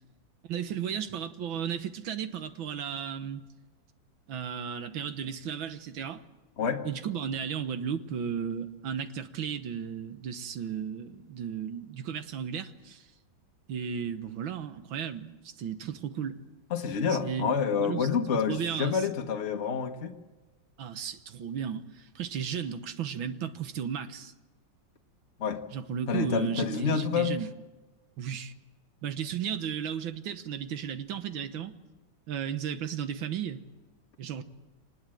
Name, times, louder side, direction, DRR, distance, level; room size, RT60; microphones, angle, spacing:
voice 1, 0.5-3.4 4.3-6.2 6.8-13.1 13.7-16.4 17.1-19.1 20.8-24.3 25.7-27.5 28.2-28.5 29.0-31.8 32.3-33.6 34.2-34.4, right 8 dB, 85° right, 1.9 m, -34 dB
voice 2, 16.7-20.1 25.4-25.6 26.1-27.3, left 6 dB, 40° left, 1.3 m, -28 dB
24.0 x 20.0 x 7.6 m
omnidirectional pair, 2.1 m